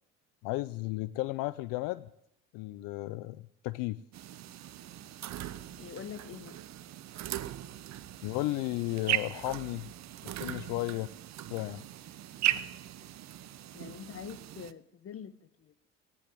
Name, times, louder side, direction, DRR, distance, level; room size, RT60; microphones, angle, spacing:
voice 1, 0.4-2.1 2.5-4.0 8.2-9.9 10.2-11.1 11.5-11.8, left 18 dB, 75° left, 0.6 m, -34 dB
sound 1, 4.1-14.7, right 12 dB, 55° right, 0.9 m, -38 dB
voice 2, 5.8-6.6 10.5-10.6 13.7-15.7, left 8 dB, 45° left, 1.1 m, -45 dB
17.0 x 10.0 x 8.4 m
supercardioid pair, 70°, 33 cm